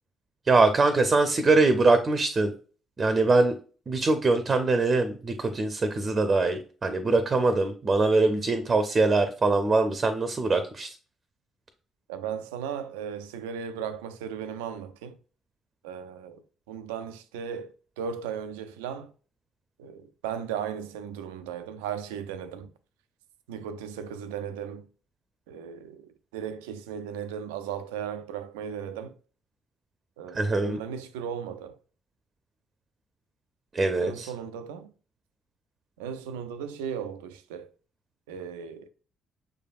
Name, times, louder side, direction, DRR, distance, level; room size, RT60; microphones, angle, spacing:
voice 1, 0.5-2.5 3.0-3.5 3.9-11.0 30.3-30.8 33.7-34.3, right 3 dB, 35° right, 0.6 m, -23 dB
voice 2, 12.1-15.2 15.8-19.1 19.8-22.7 23.5-24.9 25.5-29.2 30.2-31.8 34.0-34.9 36.0-37.7 38.3-38.9, right 8 dB, 75° right, 0.4 m, -36 dB
6.5 x 3.3 x 2.4 m
figure-of-eight pair, 45°, 0 cm